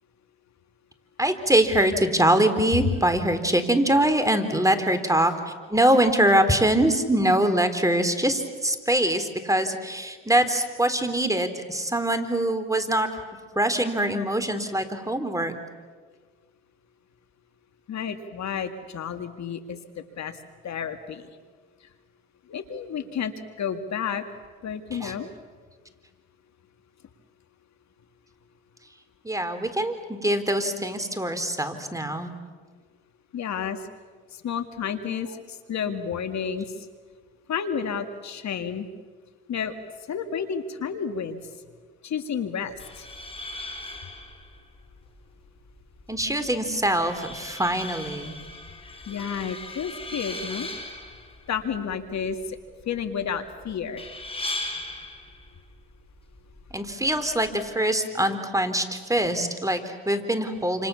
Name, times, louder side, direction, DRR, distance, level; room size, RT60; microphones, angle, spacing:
voice 1, 1.2-5.3 5.7-13.2 13.6-15.5 25.0-25.1 29.2-32.3 46.1-48.4 56.7-60.9, right 1 dB, 10° right, 9 dB, 3.9 m, -23 dB
voice 2, 17.9-20.4 20.6-21.3 22.5-23.3 23.6-24.2 24.6-25.3 33.3-33.8 34.3-36.7 37.5-38.9 39.5-39.7 40.1-41.4 42.0-43.1 49.1-50.7 51.5-52.6 52.9-54.1, left 7 dB, 55° left, 8 dB, 2.3 m, -31 dB
sound 1, 42.7-57.7, left 2 dB, 15° left, 5.6 m, -39 dB
29.0 x 27.5 x 7.2 m, 1.5 s
supercardioid pair, 65°, 33 cm